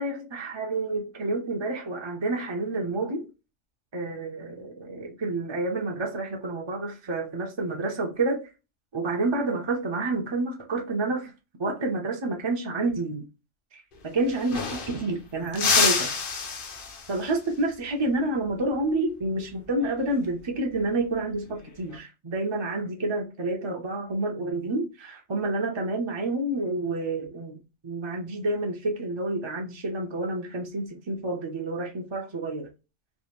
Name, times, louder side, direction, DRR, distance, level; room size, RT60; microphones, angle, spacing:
voice 1, 0.0-3.3 3.9-8.5 8.9-11.3 11.6-13.2 13.7-16.1 17.1-32.7, right 2 dB, 35° right, 0.4 m, -29 dB
sound 1, 13.9-14.0 14.2-15.1 15.5-17.3 19.8-20.1 21.5-22.0, left 5 dB, 50° left, 0.8 m, -27 dB
3.4 x 2.5 x 2.9 m
omnidirectional pair, 1.3 m